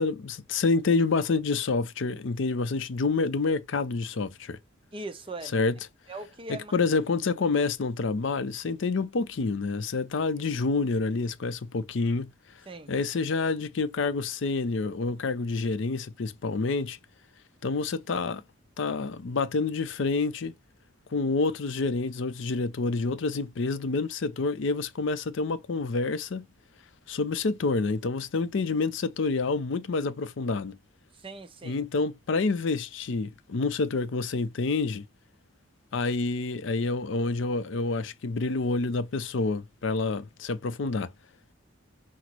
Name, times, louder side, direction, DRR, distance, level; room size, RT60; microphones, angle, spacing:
voice 1, 0.0-4.6 5.5-5.8 6.5-12.3 12.9-17.0 17.6-18.4 18.8-20.5 21.1-26.5 27.1-30.8 31.6-35.0 35.9-41.1, left 3 dB, 60° left, 0.5 m, -28 dB
voice 2, 4.9-5.5 6.1-6.7 12.7-12.9 31.1-31.8, right 2 dB, 25° right, 0.6 m, -40 dB
5.9 x 2.0 x 2.9 m
head